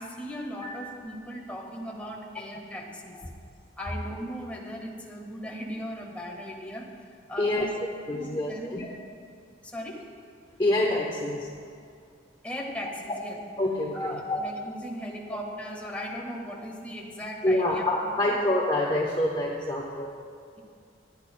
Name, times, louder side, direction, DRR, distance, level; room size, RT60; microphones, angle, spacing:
voice 1, 0.0-3.2 3.8-6.9 7.3-7.7 8.1-8.7 9.6-10.1 12.4-13.4 13.9-18.4, equal, 5° left, -2 dB, 1.5 m, -38 dB
voice 2, 8.1-8.9 10.6-11.5 13.6-14.5 15.3-15.4 17.4-20.1, left 1 dB, 25° left, -2 dB, 0.9 m, -26 dB
28.0 x 9.9 x 2.2 m, 2.3 s
head